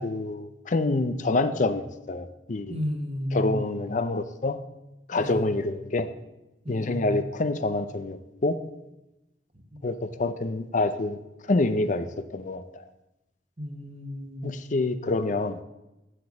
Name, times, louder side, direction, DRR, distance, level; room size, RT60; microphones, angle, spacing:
voice 1, 0.0-2.8 3.3-4.6 5.1-6.1 6.7-8.6 9.8-11.2 11.5-12.8 14.4-15.6, left 2 dB, 40° left, 11 dB, 0.5 m, -27 dB
voice 2, 2.7-3.8 5.1-5.6 6.6-7.3 9.7-9.9 13.6-14.7, equal, 35° right, 5 dB, 1.2 m, -33 dB
7.9 x 6.8 x 7.2 m, 0.97 s
head